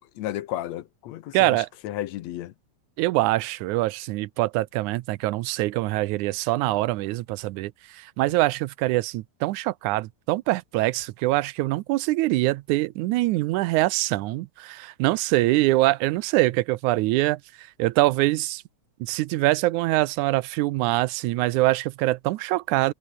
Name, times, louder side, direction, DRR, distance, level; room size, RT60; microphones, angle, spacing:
voice 1, 0.0-2.5, left 13 dB, 70° left, 2.0 m, -33 dB
voice 2, 1.3-1.7 3.0-18.6 19.0-22.9, right 18 dB, 85° right, 2.1 m, -24 dB
omnidirectional pair, 3.4 m